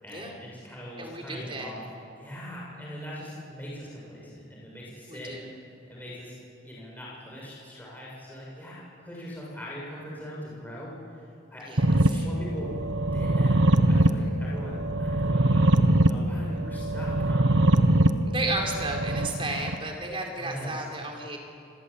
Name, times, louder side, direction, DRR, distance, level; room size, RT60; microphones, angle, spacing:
voice 1, 0.0-1.8 2.2-5.3 5.9-6.3 6.6-10.9 11.5-12.7 13.1-15.7 16.1-17.5 20.4-20.8, equal, 10° left, -5 dB, 7.0 m, -41 dB
voice 2, 1.0-1.7 5.1-5.5 11.7-12.2 18.2-21.4, right 2 dB, 30° right, 1 dB, 4.6 m, -33 dB
sound 1, 11.8-19.7, right 1 dB, 70° right, 1.4 m, -23 dB
27.5 x 22.5 x 8.7 m, 2.7 s
head